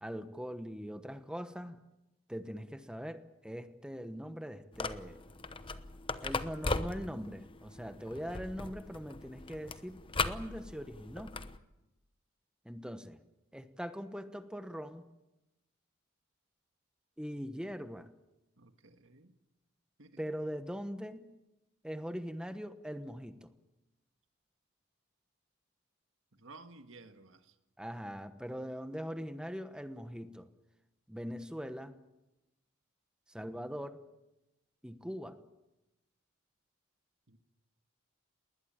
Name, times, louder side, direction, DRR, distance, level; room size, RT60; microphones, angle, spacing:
voice 1, 0.0-1.8 2.3-5.2 6.2-11.4 12.6-13.2 13.5-15.0 17.2-18.1 20.2-21.3 21.8-23.5 27.8-30.5 31.1-31.9 33.3-34.0 34.8-35.4, equal, 5° right, 9 dB, 1.0 m, -41 dB
sound 1, 4.7-11.6, left 3 dB, 25° left, 0.9 m, -39 dB
voice 2, 18.6-19.3 20.0-20.3 26.3-27.6 37.3-37.4, right 3 dB, 65° right, 8 dB, 1.7 m, -55 dB
20.5 x 19.5 x 8.8 m, 0.96 s
head